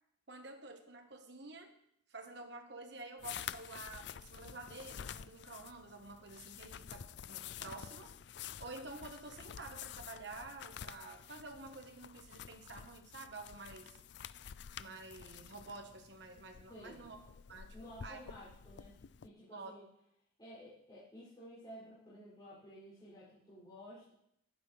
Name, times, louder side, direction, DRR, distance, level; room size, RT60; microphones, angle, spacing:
voice 1, 0.3-1.7 2.1-8.1 8.6-14.0 14.8-17.2 17.5-18.2 19.5-19.7, right 3 dB, 55° right, 5 dB, 1.4 m, -50 dB
sound 1, 3.2-19.3, left 9 dB, 55° left, 0.4 m, -50 dB
voice 2, 16.7-17.1 17.7-18.9 19.2-19.8 20.4-24.1, equal, 20° left, -11 dB, 6.5 m, -53 dB
20.0 x 9.7 x 3.4 m, 0.75 s
head